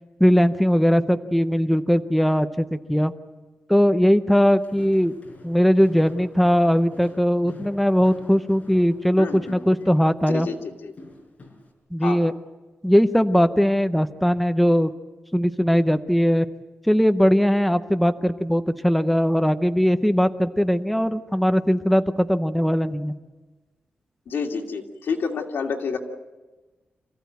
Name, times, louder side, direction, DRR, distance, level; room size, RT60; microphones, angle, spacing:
voice 1, 0.2-3.1 3.7-5.1 5.4-10.5 11.9-12.3 12.8-14.9 15.3-16.5 16.9-23.1, equal, ahead, 9 dB, 0.6 m, -20 dB
Walk footsteps, 4.5-11.7, left 3 dB, 40° left, 4.9 m, -47 dB
voice 2, 9.2-9.6 10.3-10.9 12.0-12.2 24.3-26.0, left 5 dB, 85° left, 1 dB, 2.7 m, -29 dB
27.0 x 15.5 x 9.3 m, 1.2 s
wide cardioid pair, 180°, 4 cm